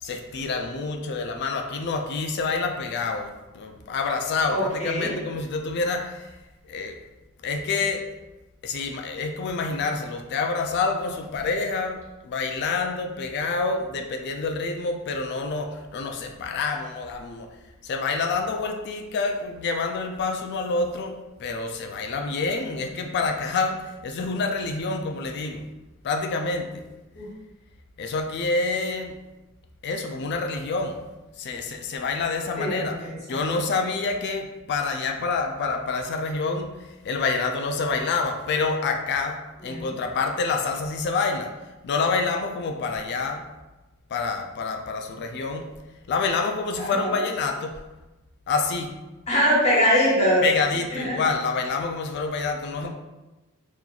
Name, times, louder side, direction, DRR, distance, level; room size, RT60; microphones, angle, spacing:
voice 1, 0.0-6.4 6.6-7.0 7.4-8.0 8.6-17.6 17.8-25.6 26.0-26.9 28.0-29.2 29.8-31.1 31.4-33.0 33.3-41.5 41.8-43.5 44.1-45.7 46.1-47.8 48.5-49.0 50.4-52.9, left 4 dB, 50° left, 4 dB, 0.3 m, -27 dB
voice 2, 4.5-5.2 27.1-27.3 32.6-33.5 39.7-39.9 46.8-47.1 49.3-50.4 50.9-51.1, equal, 30° left, -7 dB, 1.4 m, -23 dB
2.9 x 2.3 x 3.8 m, 1.0 s
head